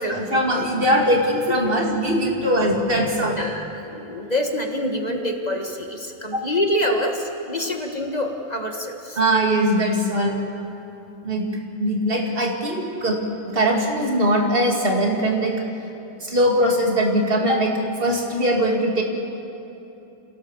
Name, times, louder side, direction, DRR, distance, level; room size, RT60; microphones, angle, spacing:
voice 1, 0.1-3.4 6.3-6.4 9.2-10.4 11.2-11.5 11.8-15.6 16.2-19.0, equal, 30° right, 1 dB, 2.6 m, -21 dB
voice 2, 3.3-7.1 7.5-9.2, left 1 dB, 25° left, 3 dB, 1.4 m, -26 dB
27.0 x 17.5 x 7.2 m, 2.9 s
omnidirectional pair, 2.1 m